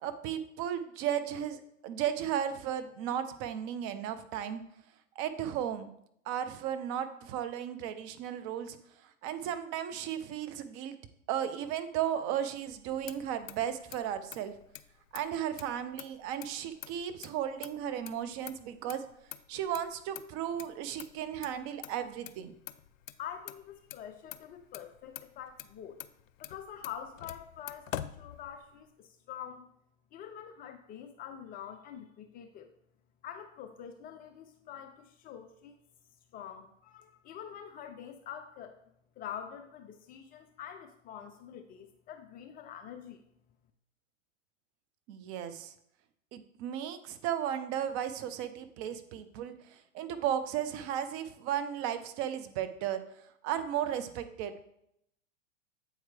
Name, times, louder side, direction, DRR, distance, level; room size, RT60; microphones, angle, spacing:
voice 1, 0.0-4.6 5.2-5.9 6.3-8.8 9.2-11.0 11.3-14.5 15.1-19.0 19.5-22.5 45.1-45.7 46.3-53.0 53.4-54.7, right 10 dB, 35° right, 11 dB, 0.6 m, -35 dB
Motor vehicle (road), 12.7-28.9, left 11 dB, 85° left, 0.5 m, -47 dB
voice 2, 23.2-26.0 26.4-29.6 30.1-32.7 33.2-35.8 36.3-38.8 39.2-43.2, left 9 dB, 25° left, 6 dB, 0.4 m, -45 dB
7.8 x 4.6 x 3.3 m, 0.74 s
hypercardioid pair, 110°, 39 cm